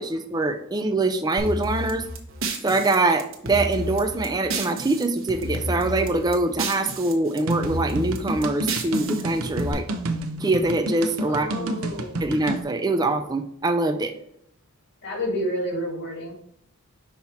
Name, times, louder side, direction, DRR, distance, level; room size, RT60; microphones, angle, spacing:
voice 1, 0.0-2.1 2.6-9.9 10.4-11.5 12.2-14.1, right 2 dB, 20° right, 6 dB, 0.4 m, -24 dB
sound 1, 1.4-5.0 5.3-7.1 7.4-9.7, right 1 dB, 60° right, 1.1 m, -31 dB
sound 2, 7.5-12.6, right 1 dB, 80° right, 0.7 m, -29 dB
voice 2, 11.3-12.1 12.9-13.1 15.0-16.3, equal, 55° left, 1 dB, 2.1 m, -29 dB
5.6 x 4.4 x 4.3 m, 0.72 s
head